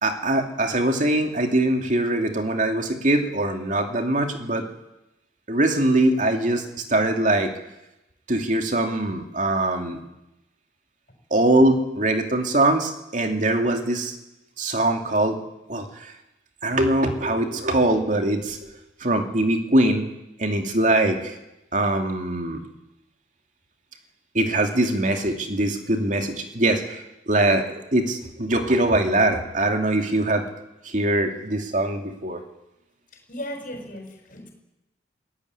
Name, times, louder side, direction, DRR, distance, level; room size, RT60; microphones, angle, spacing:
voice 1, 0.0-4.7 5.5-7.5 8.3-10.0 11.3-14.2 14.6-15.4 15.7-16.1 16.6-18.7 19.0-20.1 20.4-21.4 21.7-22.6 24.3-30.5 30.8-32.4, right 1 dB, 45° right, 4 dB, 2.7 m, -22 dB
voice 2, 33.3-34.5, equal, 50° left, 2 dB, 6.8 m, -36 dB
23.5 x 17.5 x 9.8 m, 0.94 s
head